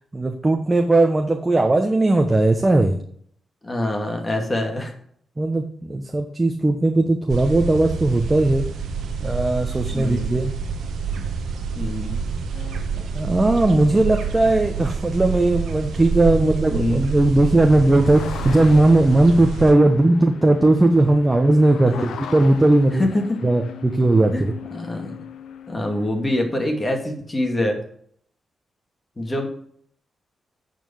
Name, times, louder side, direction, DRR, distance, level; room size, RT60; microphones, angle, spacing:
voice 1, 0.1-3.0 5.4-8.6 9.2-10.5 13.0-23.0 23.4-24.5, right 2 dB, 25° right, 4 dB, 1.1 m, -18 dB
voice 2, 3.6-4.9 9.9-10.3 11.1-11.2 11.7-12.2 16.3-17.0 21.9-22.1 22.9-23.4 24.3-24.4 24.7-25.2 25.7-27.8 29.2-29.5, left 1 dB, 30° left, 2 dB, 2.3 m, -25 dB
sound 1, 7.3-19.7, right 6 dB, 75° right, 1.3 m, -28 dB
sound 2, 12.5-16.6 17.2-17.3 17.5-26.5, left 8 dB, 80° left, 0.7 m, -40 dB
8.9 x 4.5 x 7.2 m, 0.63 s
supercardioid pair, 50°, 0 cm